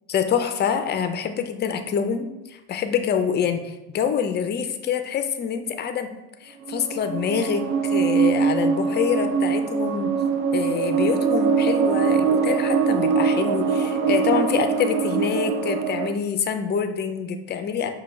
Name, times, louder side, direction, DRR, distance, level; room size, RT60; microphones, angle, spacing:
voice 1, 0.1-6.1 6.4-10.1 10.5-17.9, left 7 dB, 25° left, 7 dB, 0.3 m, -26 dB
sound 1, 6.7-16.1, right 6 dB, 70° right, 0.5 m, -22 dB
5.7 x 2.3 x 3.1 m, 0.96 s
supercardioid pair, 85°, 46 cm